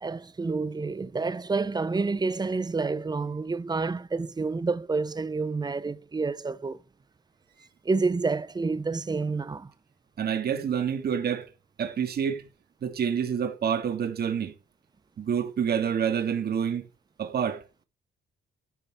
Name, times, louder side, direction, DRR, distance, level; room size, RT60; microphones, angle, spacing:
voice 1, 0.0-6.8 7.8-9.7, right 4 dB, 20° right, 0.6 m, -29 dB
voice 2, 10.2-11.5 11.8-12.5 12.8-14.5 15.2-16.9 17.2-17.6, right 7 dB, 55° right, 1.4 m, -27 dB
10.0 x 5.6 x 3.4 m
cardioid pair, 90°, 20 cm